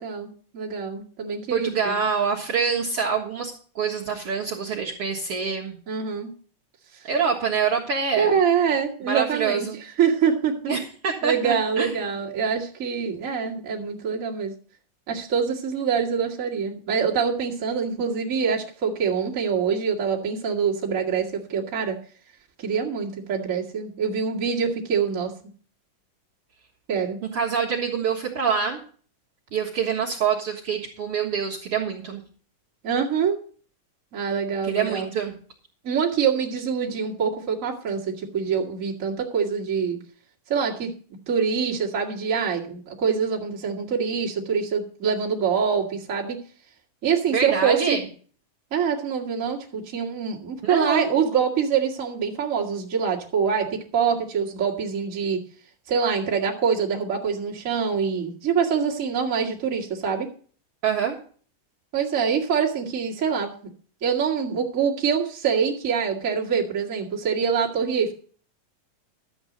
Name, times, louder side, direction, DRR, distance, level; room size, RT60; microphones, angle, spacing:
voice 1, 0.0-2.0 5.9-6.3 8.2-9.7 10.0-10.5 11.2-14.5 15.1-22.0 22.6-25.3 26.9-27.2 32.8-33.4 34.1-35.1 35.8-40.0 40.5-40.9 41.3-46.4 47.0-48.0 48.7-55.4 55.9-60.3 61.9-63.5 64.0-68.1, right 6 dB, 30° right, -3 dB, 2.0 m, -25 dB
voice 2, 1.5-5.8 7.1-8.3 9.1-9.8 10.7-12.0 27.3-28.8 29.5-32.2 34.6-35.4 47.3-48.1 50.6-51.1 60.8-61.2, right 6 dB, 50° right, -4 dB, 2.2 m, -26 dB
12.5 x 8.1 x 5.2 m, 0.43 s
omnidirectional pair, 3.8 m